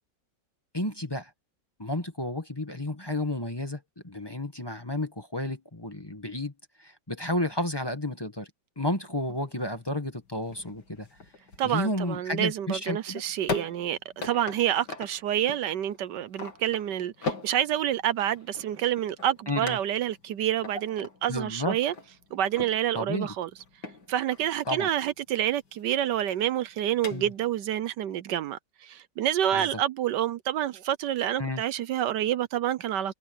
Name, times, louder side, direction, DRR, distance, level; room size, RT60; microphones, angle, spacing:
voice 1, 0.7-1.3 1.8-6.5 6.8-8.5 8.8-11.1 11.6-13.2 19.5-19.8 21.3-21.8 22.9-23.3 24.7-24.9 27.1-27.3 29.5-29.7 31.4-31.6, left 1 dB, 15° left, 1.6 m, -31 dB
sound 1, 8.8-27.6, left 3 dB, 70° left, 3.6 m, -41 dB
voice 2, 11.6-21.9 22.3-23.5 24.1-33.2, right 11 dB, 75° right, 1.3 m, -28 dB
omnidirectional pair, 1.9 m